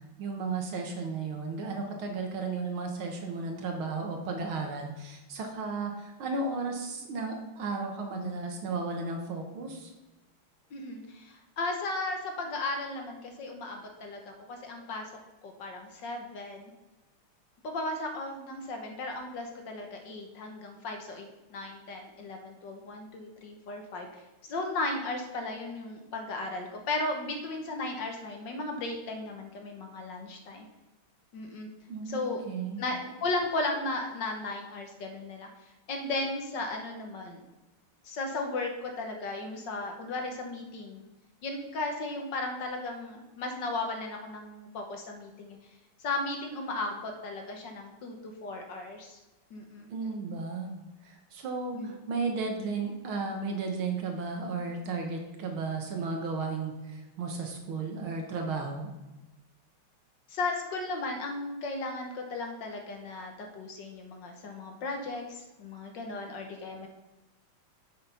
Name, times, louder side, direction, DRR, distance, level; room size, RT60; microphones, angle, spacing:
voice 1, 0.2-9.9 31.9-32.8 49.9-50.7 51.1-58.9, right 4 dB, 75° right, 3 dB, 2.1 m, -34 dB
voice 2, 10.7-15.1 15.4-16.7 17.6-24.1 24.4-30.7 31.3-31.7 32.1-32.4 32.8-35.5 35.9-37.4 38.0-41.0 41.4-45.6 46.0-49.2 49.5-49.9 51.7-52.0 60.3-66.9, left 2 dB, 60° left, 3 dB, 1.8 m, -35 dB
7.4 x 6.0 x 5.6 m, 1.1 s
omnidirectional pair, 2.3 m